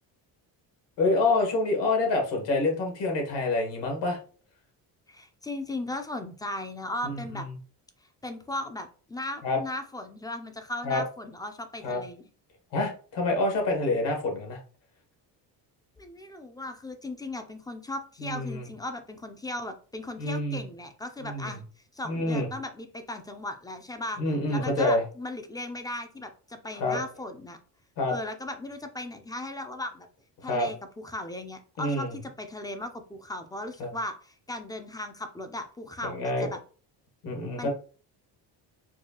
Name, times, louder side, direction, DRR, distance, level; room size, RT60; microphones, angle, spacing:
voice 1, 1.0-4.2 7.0-7.2 9.4-9.6 10.8-11.0 11.8-12.0 12.7-14.6 18.2-18.6 20.2-20.6 21.2-21.5 22.0-22.5 24.2-25.0 26.8-27.0 28.0-28.1 30.4-30.7 31.8-32.1 33.8-33.9 36.0-36.5 37.2-37.7, left 2 dB, 75° left, 2 dB, 1.5 m, -27 dB
voice 2, 5.1-7.5 8.2-12.2 16.0-21.6 21.9-24.2 24.5-27.6 28.1-30.1 30.4-36.6 37.6-37.7, left 1 dB, 10° left, 7 dB, 0.3 m, -37 dB
4.5 x 2.3 x 2.8 m, 0.40 s
cardioid pair, 120°, 43 cm